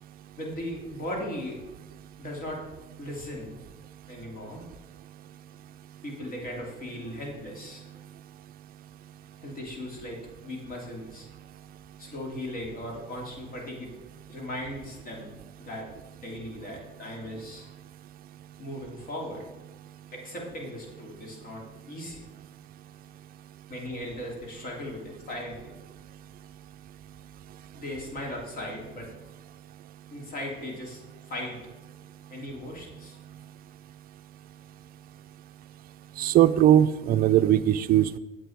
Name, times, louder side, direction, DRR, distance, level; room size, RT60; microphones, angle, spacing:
voice 1, 0.4-1.6 2.2-2.6 3.0-3.6 4.1-4.6 6.0-7.8 9.4-11.3 12.0-13.9 14.3-15.9 16.2-17.7 18.6-19.4 20.1-22.2 23.7-25.7 27.7-29.1 30.1-31.0 31.3-31.6 32.3-33.2, left 1 dB, 50° left, -1 dB, 3.0 m, -37 dB
voice 2, 36.2-38.2, right 11 dB, 50° right, 11 dB, 0.5 m, -20 dB
8.4 x 7.8 x 4.6 m, 1.1 s
cardioid pair, 115°, 19 cm